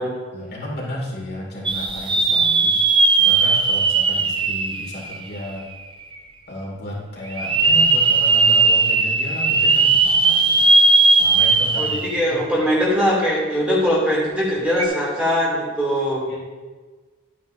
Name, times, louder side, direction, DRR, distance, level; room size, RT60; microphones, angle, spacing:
voice 1, 0.3-2.8 3.1-5.6 6.5-10.7 11.2-12.5 16.3-16.4, equal, 50° left, -4 dB, 2.4 m, -33 dB
sound 1, 1.7-5.6 6.1-6.2 7.3-12.3 12.6-12.7 14.7-14.9, right 3 dB, 25° right, 0.5 m, -17 dB
voice 2, 11.8-16.3, equal, 5° right, -6 dB, 2.5 m, -21 dB
11.5 x 9.2 x 2.6 m, 1.4 s
head